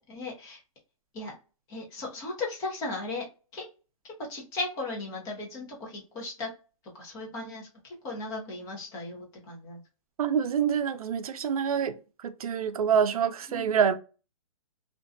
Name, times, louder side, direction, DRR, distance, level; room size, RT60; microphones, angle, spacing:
voice 1, 0.1-0.6 1.1-1.4 1.7-3.3 3.5-3.7 4.3-6.5 6.9-9.8 13.5-13.7, left 2 dB, 20° left, 0.7 m, -36 dB
voice 2, 10.2-13.9, right 7 dB, 90° right, 0.4 m, -26 dB
2.5 x 2.2 x 2.5 m
hypercardioid pair, 155°, 18 cm